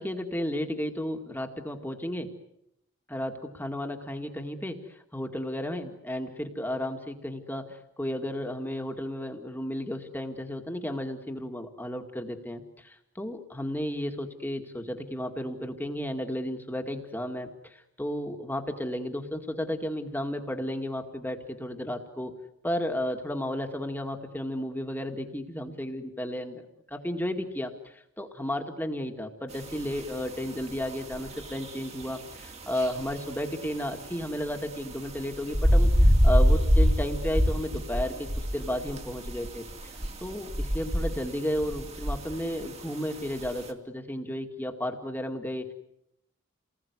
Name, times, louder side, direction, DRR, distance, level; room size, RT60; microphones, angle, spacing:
voice 1, 0.0-2.3 3.1-22.3 22.6-26.6 26.9-38.3 38.5-39.9 40.2-45.7, left 1 dB, 10° left, 4 dB, 2.1 m, -33 dB
sound 1, 29.5-43.7, equal, 30° right, 2.8 m, -28 dB
30.0 x 20.5 x 9.7 m, 0.80 s
head